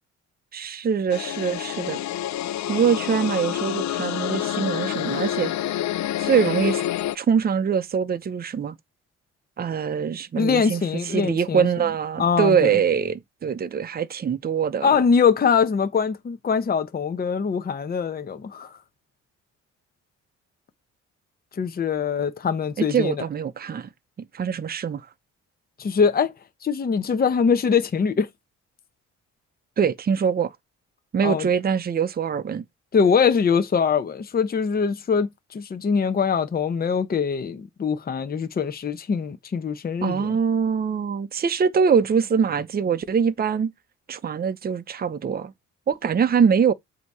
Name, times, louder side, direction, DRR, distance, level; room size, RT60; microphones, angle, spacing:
voice 1, 0.5-2.0 2.7-5.5 6.2-6.8 7.1-8.7 9.6-10.8 11.1-15.0 22.8-23.9 24.3-25.0 29.8-30.5 31.1-32.6 40.0-43.7 44.1-45.5 45.9-46.7, right 7 dB, 30° right, 0.7 m, -23 dB
sound 1, 1.1-7.1, left 12 dB, 65° left, 0.6 m, -28 dB
voice 2, 10.4-11.7 12.2-12.7 14.8-18.7 21.6-23.1 25.8-26.3 26.6-28.3 31.2-31.5 32.9-40.4, left 6 dB, 30° left, 0.8 m, -23 dB
7.9 x 2.9 x 4.7 m
cardioid pair, 90°, 30 cm